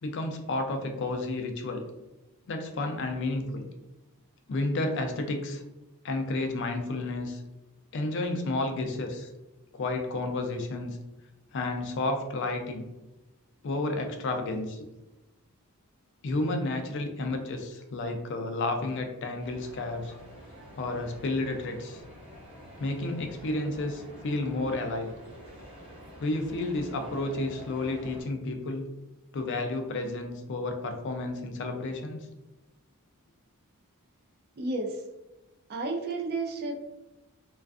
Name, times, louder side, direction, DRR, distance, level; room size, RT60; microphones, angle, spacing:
voice 1, 0.0-1.8 2.5-3.7 4.5-5.6 6.0-7.4 7.9-9.3 9.7-11.0 11.5-12.9 13.6-14.8 16.2-20.1 20.8-22.0 22.8-25.1 26.2-28.9 29.3-32.3, left 2 dB, 55° left, 4 dB, 0.4 m, -31 dB
sound 1, 19.4-28.2, equal, 25° right, 0.9 m, -47 dB
voice 2, 34.6-35.0 35.7-36.7, right 2 dB, 45° right, 2 dB, 0.4 m, -31 dB
2.4 x 2.3 x 2.3 m, 0.98 s
head